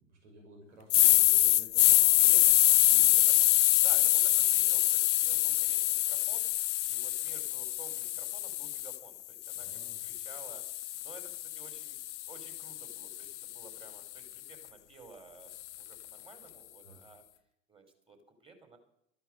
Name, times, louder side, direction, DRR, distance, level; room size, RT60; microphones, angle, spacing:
voice 1, 0.0-3.2 9.5-10.1 16.8-17.0, equal, 70° right, 2 dB, 6.5 m, -54 dB
sound 1, 0.9-9.0 9.5-13.7, left 16 dB, 70° left, 0.5 m, -26 dB
voice 2, 3.1-3.5 3.8-6.5 6.9-10.6 11.0-12.0 12.3-17.2 17.7-18.2 18.4-18.8, right 3 dB, 15° right, 5 dB, 4.8 m, -54 dB
14.0 x 11.0 x 7.8 m, 0.76 s
hypercardioid pair, 90°, 36 cm